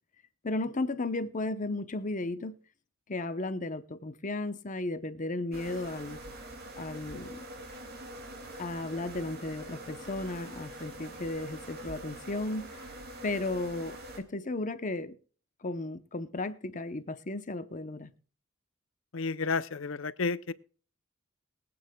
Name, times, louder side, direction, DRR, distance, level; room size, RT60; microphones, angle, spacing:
voice 1, 0.4-2.5 3.1-6.2 6.8-7.5 8.6-12.6 13.2-15.2 15.6-18.1, left 2 dB, 40° left, 0.9 m, -34 dB
sound 1, 5.5-14.2, right 1 dB, 50° right, 2.5 m, -44 dB
voice 2, 19.1-20.5, left 4 dB, 70° left, 0.6 m, -31 dB
23.0 x 8.8 x 2.3 m
head